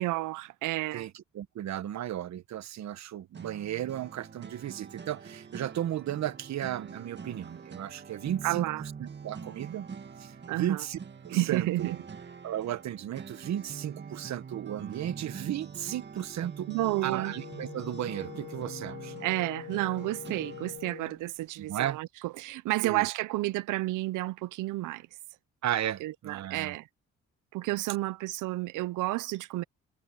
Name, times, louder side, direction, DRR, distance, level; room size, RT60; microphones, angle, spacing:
voice 1, 0.0-1.1 8.4-8.8 10.5-10.8 11.3-12.0 16.7-17.3 19.2-25.1 26.0-26.9 27.5-29.6, right 18 dB, 90° right, 0.6 m, -31 dB
voice 2, 0.9-8.7 9.0-9.9 10.2-11.9 12.4-16.7 17.0-19.1 21.6-22.0 22.8-23.1 25.6-26.8, right 11 dB, 65° right, 1.1 m, -34 dB
sound 1, 3.3-20.8, right 6 dB, 35° right, 2.0 m, -44 dB
Wind instrument woodwind instrument, 16.7-21.2, left 10 dB, 60° left, 2.6 m, -44 dB
cardioid pair, 90°, 30 cm